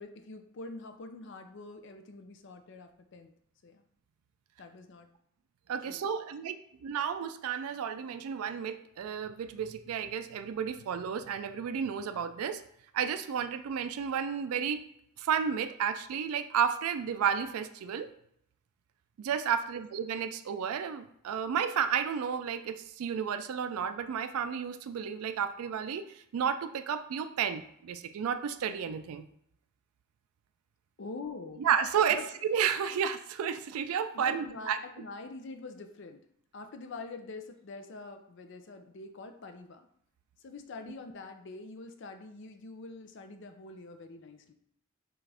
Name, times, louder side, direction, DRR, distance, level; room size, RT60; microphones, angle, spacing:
voice 1, 0.0-3.3 3.6-3.8 4.6-5.1 5.9-6.0 31.0-31.6 32.1-32.3 34.1-36.2 36.5-39.9 40.4-44.5, left 3 dB, 55° left, 7 dB, 0.5 m, -45 dB
voice 2, 5.7-12.6 12.9-14.8 15.2-18.1 19.2-29.3 31.6-34.8, right 7 dB, 85° right, 9 dB, 0.3 m, -32 dB
6.1 x 2.5 x 3.3 m, 0.72 s
head